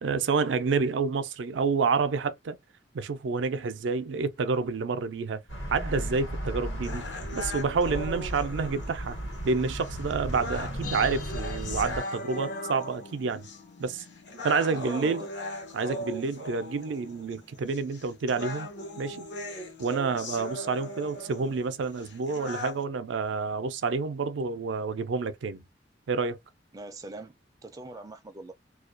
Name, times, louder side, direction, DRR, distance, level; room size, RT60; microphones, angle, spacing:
voice 1, 0.0-2.6 2.9-5.4 5.7-7.0 7.3-9.2 9.4-13.5 13.8-14.0 14.4-15.2 15.7-18.7 19.0-19.3 19.8-25.6 26.1-26.4, right 4 dB, 85° right, 0.4 m, -29 dB
sound 1, 5.5-12.0, equal, 90° left, 1.1 m, -35 dB
sound 2, 6.8-22.8, left 1 dB, 70° left, 0.9 m, -39 dB
sound 3, 10.8-15.3 15.5-15.6, left 5 dB, 50° left, 0.5 m, -45 dB
voice 2, 14.7-15.3 26.7-27.3 27.6-28.5, right 2 dB, 20° right, 0.3 m, -41 dB
2.3 x 2.2 x 2.4 m
head